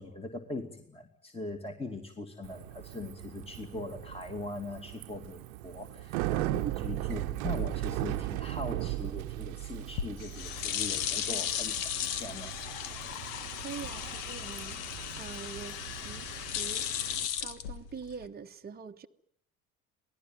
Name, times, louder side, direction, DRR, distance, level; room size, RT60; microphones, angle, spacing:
voice 1, 0.0-12.5, left 2 dB, 15° left, 2.6 m, -41 dB
Bicycle, 2.4-17.3, right 18 dB, 70° right, 1.0 m, -38 dB
sound 1, 9.8-18.3, left 10 dB, 65° left, 1.7 m, -36 dB
voice 2, 13.6-14.9 15.2-16.9 17.4-19.1, right 6 dB, 20° right, 1.1 m, -44 dB
27.0 x 19.0 x 9.2 m
figure-of-eight pair, 55°, 43 cm